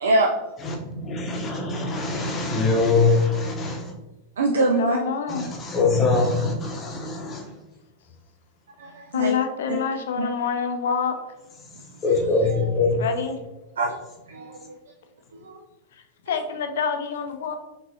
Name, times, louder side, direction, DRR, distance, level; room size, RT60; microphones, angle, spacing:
voice 1, 0.0-0.5 4.4-5.0 8.8-9.3 9.7-9.8 10.2-10.3 12.5-12.6 13.8-14.0 14.3-14.8 15.3-15.6 16.3-16.4, right 2 dB, 65° right, 2 dB, 0.4 m, -24 dB
voice 2, 0.6-3.9 5.3-7.5 12.0-13.0, left 3 dB, 25° left, 1 dB, 0.9 m, -23 dB
voice 3, 4.6-5.5 9.1-11.2 12.9-13.5 16.3-17.6, left 6 dB, 60° left, 6 dB, 0.5 m, -26 dB
4.9 x 3.1 x 2.7 m, 1.0 s
figure-of-eight pair, 90°, 0 cm